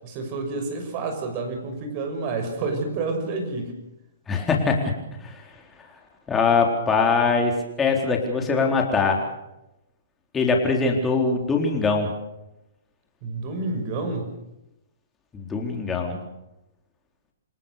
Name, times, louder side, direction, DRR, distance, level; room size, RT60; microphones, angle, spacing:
voice 1, 0.0-3.8 13.2-14.3, right 3 dB, 35° right, 6 dB, 6.4 m, -29 dB
voice 2, 4.3-4.8 5.2-5.4 6.3-9.2 10.3-12.1 15.3-16.2, left 4 dB, 15° left, 1 dB, 4.0 m, -22 dB
27.5 x 18.5 x 6.8 m, 0.92 s
hypercardioid pair, 150°, 0 cm